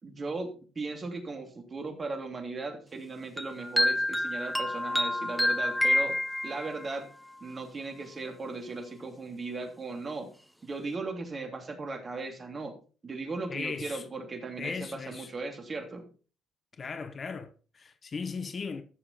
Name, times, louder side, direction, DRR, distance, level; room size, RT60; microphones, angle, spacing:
voice 1, 0.0-6.2 6.4-7.1 7.4-10.3 10.6-12.7 13.0-16.1, right 3 dB, 35° right, 3.0 m, -37 dB
sound 1, 3.4-6.9, left 1 dB, ahead, 0.6 m, -28 dB
voice 2, 13.5-14.0 14.6-15.3 16.7-18.8, left 5 dB, 40° left, 1.1 m, -37 dB
13.0 x 6.9 x 4.4 m
hypercardioid pair, 55°, 0 cm